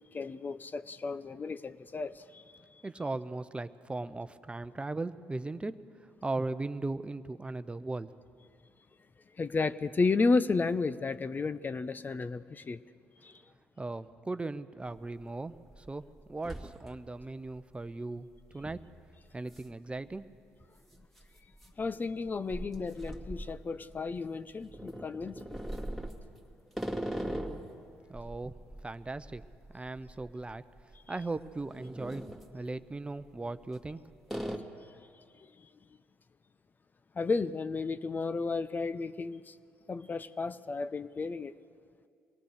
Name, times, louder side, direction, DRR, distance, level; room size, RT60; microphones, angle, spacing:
voice 1, 0.1-2.4 9.4-12.8 13.2-13.3 21.8-25.6 37.2-39.5 39.9-41.5, left 4 dB, 35° left, 0.7 m, -32 dB
voice 2, 2.8-8.1 13.8-18.3 18.5-18.8 19.3-20.2 28.1-28.5 28.8-29.4 29.7-30.6 31.1-32.2 32.5-34.0, right 2 dB, 20° right, 0.8 m, -38 dB
sound 1, 14.9-15.0 15.5-15.9 16.2-17.2 17.6-17.7 18.6-18.9 19.5-19.7 20.0-20.1 21.0-24.1 24.7-27.7 28.1-30.5 30.8-31.0 31.5-32.5 33.4-33.9 34.3-34.6, right 1 dB, ahead, 2.3 m, -40 dB
24.0 x 18.0 x 6.6 m
hypercardioid pair, 55°, 6 cm